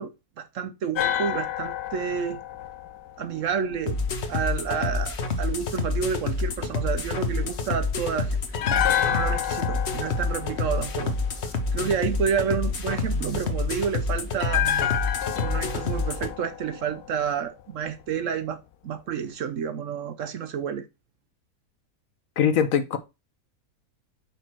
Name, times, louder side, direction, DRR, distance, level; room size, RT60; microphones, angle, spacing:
voice 1, 0.0-2.4 3.2-4.0 4.3-8.4 9.0-11.2 11.7-14.7 15.3-20.9, right 7 dB, 65° right, 0.9 m, -30 dB
sound 1, 0.9-4.1 8.5-11.7 14.4-17.6 17.9-18.0, left 11 dB, 90° left, 1.2 m, -29 dB
sound 2, 3.9-16.3, left 3 dB, 50° left, 1.1 m, -28 dB
sound 3, 8.5-9.5 10.2-10.6 11.6-12.0 12.9-13.6 14.3-15.0, right 12 dB, 85° right, 2.7 m, -39 dB
voice 2, 22.4-23.0, left 8 dB, 65° left, 1.1 m, -21 dB
5.3 x 4.5 x 6.0 m
omnidirectional pair, 1.6 m